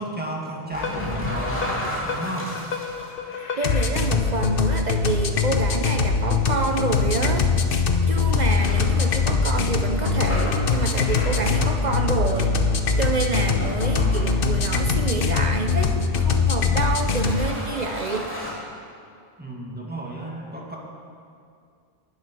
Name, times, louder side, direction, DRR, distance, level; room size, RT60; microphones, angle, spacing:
voice 1, 0.0-1.6 2.0-2.5 13.8-14.4 19.4-20.8, right 1 dB, 10° right, -2 dB, 1.9 m, -33 dB
sound 1, 0.7-4.2 4.7-4.9 5.6-5.7 6.6-6.7 8.1-15.4 15.8-15.9 16.8-16.9 17.1-18.5, left 1 dB, 10° left, 2.8 m, -34 dB
sound 2, 0.8-17.5, left 5 dB, 60° left, 1.0 m, -23 dB
voice 2, 3.6-7.5 8.1-12.6 13.0-18.3, right 3 dB, 45° right, 5 dB, 0.8 m, -28 dB
11.5 x 8.1 x 9.7 m, 2.3 s
omnidirectional pair, 1.1 m